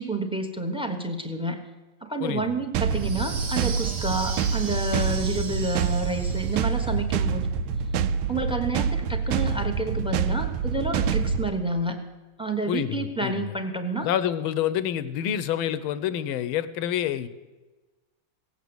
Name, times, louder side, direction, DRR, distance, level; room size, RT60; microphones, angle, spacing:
voice 1, 0.0-1.6 2.0-7.5 8.3-12.0 12.4-14.1, right 2 dB, 5° right, 7 dB, 0.7 m, -29 dB
voice 2, 2.2-2.7 12.7-13.5 14.0-17.3, left 10 dB, 85° left, 14 dB, 1.6 m, -28 dB
sound 1, 2.7-11.5, right 6 dB, 80° right, 1.4 m, -26 dB
sound 2, 2.9-6.9, right 4 dB, 40° right, 1.0 m, -38 dB
17.5 x 8.3 x 7.9 m, 1.2 s
omnidirectional pair, 2.2 m